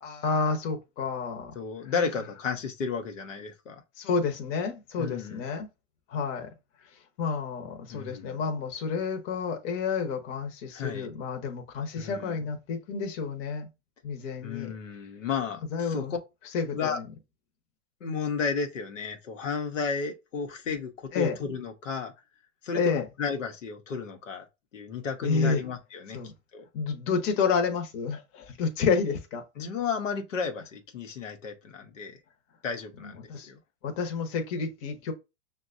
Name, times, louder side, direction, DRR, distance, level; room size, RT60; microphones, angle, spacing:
voice 1, 0.0-1.5 1.8-1.9 4.0-5.7 6.1-6.5 7.2-13.7 14.0-14.7 15.7-16.1 16.5-17.1 21.1-21.4 22.7-23.1 25.2-25.6 26.1-26.3 26.7-29.4 33.0-33.5 33.8-35.1, left 5 dB, 35° left, 0.9 m, -30 dB
voice 2, 1.5-3.8 5.0-5.4 7.9-8.4 10.7-11.1 12.0-12.4 14.4-16.2 16.7-17.0 18.0-22.1 22.6-24.4 24.7-26.2 26.5-26.7 29.6-32.2 32.6-33.6, left 5 dB, 90° left, 0.9 m, -33 dB
5.9 x 2.3 x 2.5 m
hypercardioid pair, 120°, 37 cm